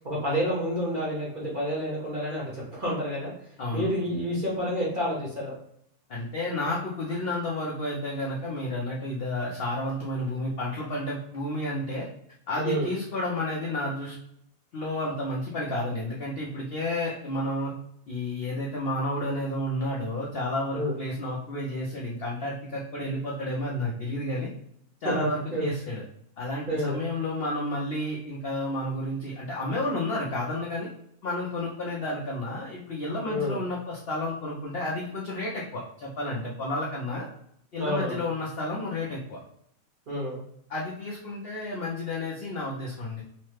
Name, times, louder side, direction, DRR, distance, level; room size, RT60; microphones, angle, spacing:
voice 1, 0.0-5.5 12.6-12.9 20.7-20.9 25.0-25.2 25.5-25.7 26.7-27.0 33.2-33.6 37.8-38.2 40.1-40.4, equal, 45° right, -5 dB, 0.8 m, -29 dB
voice 2, 3.6-3.9 6.1-12.1 12.5-14.2 14.7-17.7 18.1-24.5 25.0-26.0 26.4-30.9 31.2-37.3 37.7-39.4 40.7-43.2, left 1 dB, 70° left, -4 dB, 0.5 m, -31 dB
3.1 x 2.1 x 3.1 m, 0.72 s
omnidirectional pair, 1.7 m